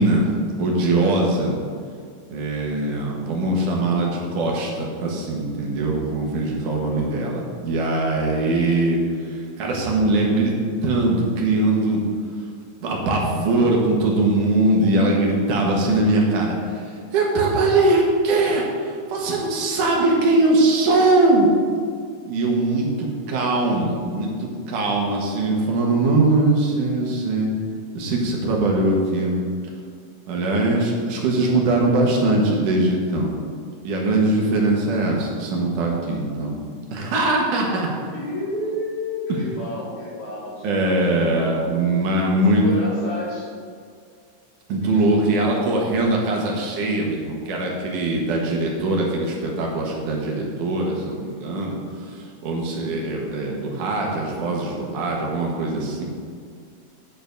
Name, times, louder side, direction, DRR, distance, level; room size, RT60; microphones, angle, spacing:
voice 1, 0.0-1.6 2.3-9.0 9.6-10.6 10.8-12.0 12.8-16.6 17.1-21.5 22.2-27.5 27.9-29.4 30.3-33.4 33.8-36.6 36.9-37.9 40.6-42.7 44.7-51.8 52.4-56.0, right 2 dB, 75° right, -1 dB, 3.0 m, -21 dB
voice 2, 6.8-7.4 22.9-23.3 38.1-41.8 42.5-43.5 44.9-45.2, left 1 dB, 65° left, -7 dB, 3.9 m, -32 dB
9.0 x 6.8 x 5.3 m, 2.1 s
omnidirectional pair, 3.6 m